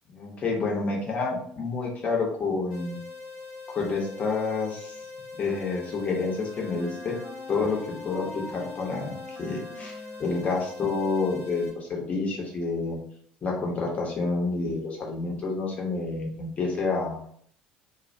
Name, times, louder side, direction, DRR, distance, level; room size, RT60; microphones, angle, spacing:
voice 1, 0.1-3.0 3.7-5.0 5.3-7.1 7.5-13.0 13.4-17.2, left 3 dB, 35° left, -2 dB, 0.8 m, -29 dB
sound 1, 2.7-11.7, left 4 dB, 85° left, 0.8 m, -42 dB
Wind instrument woodwind instrument, 5.4-11.2, left 2 dB, ahead, 0.7 m, -45 dB
2.3 x 2.1 x 2.6 m, 0.63 s
figure-of-eight pair, 60°, 4 cm